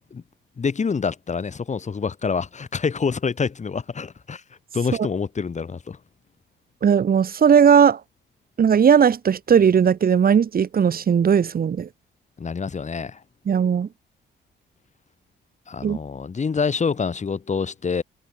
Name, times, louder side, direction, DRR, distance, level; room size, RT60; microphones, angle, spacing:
voice 1, 0.6-4.4 4.7-6.0 12.4-13.2 15.7-18.0, left 5 dB, 35° left, 3.6 m, -26 dB
voice 2, 6.8-8.0 8.6-11.9 13.5-13.9 15.8-16.0, right 7 dB, 50° right, 2.5 m, -17 dB
cardioid pair, 90°, 20 cm